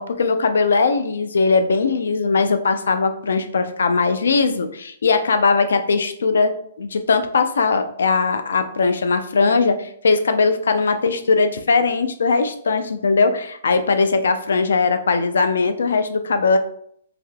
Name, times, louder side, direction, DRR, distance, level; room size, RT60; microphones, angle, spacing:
voice 1, 0.0-16.6, left 4 dB, 90° left, 8 dB, 0.4 m, -19 dB
3.3 x 2.7 x 2.2 m, 0.65 s
hypercardioid pair, 160°, 0 cm